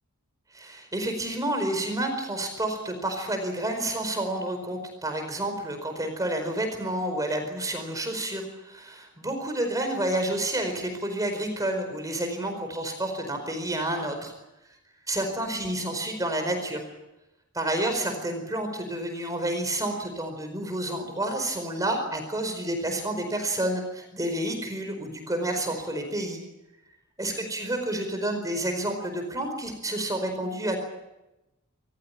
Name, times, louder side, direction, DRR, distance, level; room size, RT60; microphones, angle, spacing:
voice 1, 0.5-14.3 15.1-16.8 17.5-26.4 27.2-30.8, right 1 dB, 15° right, 5 dB, 4.7 m, -29 dB
27.0 x 15.5 x 10.0 m, 0.96 s
head